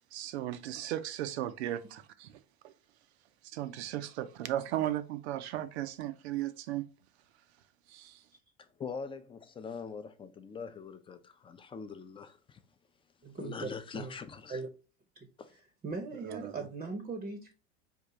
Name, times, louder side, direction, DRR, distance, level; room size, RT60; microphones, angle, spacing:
voice 1, 0.1-2.7 3.4-6.9 7.9-8.2 16.2-16.5, right 13 dB, 85° right, 0.5 m, -36 dB
voice 2, 8.6-12.6 13.3-14.6 15.4-15.5, left 5 dB, 15° left, 0.3 m, -43 dB
voice 3, 13.2-14.1 14.5-14.7 15.1-15.3 15.8-17.5, right 4 dB, 25° right, 0.6 m, -39 dB
3.6 x 2.4 x 2.9 m
hypercardioid pair, 90°, 32 cm